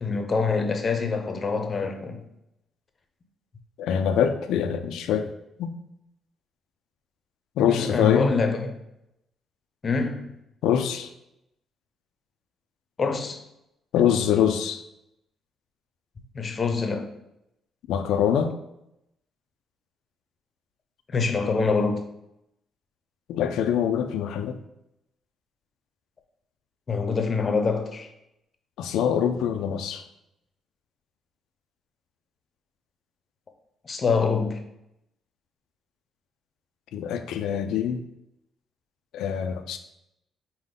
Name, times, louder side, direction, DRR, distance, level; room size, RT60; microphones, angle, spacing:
voice 1, 0.0-2.2 7.7-8.8 9.8-10.3 13.0-13.4 16.3-17.1 21.1-22.1 26.9-28.1 33.8-34.6, left 4 dB, 40° left, 0.6 m, -25 dB
voice 2, 3.8-5.3 5.6-5.7 7.6-8.3 10.6-11.1 13.9-14.8 17.9-18.6 23.3-24.6 28.8-30.0 36.9-38.0 39.1-39.8, left 8 dB, 85° left, 0.3 m, -24 dB
5.0 x 2.1 x 3.8 m
cardioid pair, 90°, 0 cm